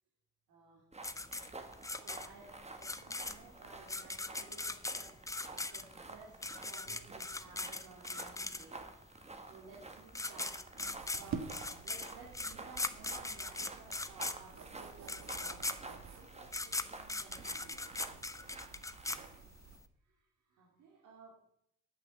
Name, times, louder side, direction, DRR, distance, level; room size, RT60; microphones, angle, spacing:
voice 1, 0.5-0.8 2.0-5.2 5.5-18.1 20.0-21.4, right 4 dB, 90° right, -3 dB, 3.0 m, -57 dB
sound 1, 0.9-19.4, right 3 dB, 20° right, 1.6 m, -51 dB
sound 2, 1.0-9.0 9.8-9.9 10.1-19.8, left 2 dB, 10° left, 0.8 m, -40 dB
sound 3, 10.8-19.8, right 6 dB, 65° right, 1.7 m, -50 dB
9.1 x 8.1 x 7.9 m, 0.72 s
cardioid pair, 90°, 30 cm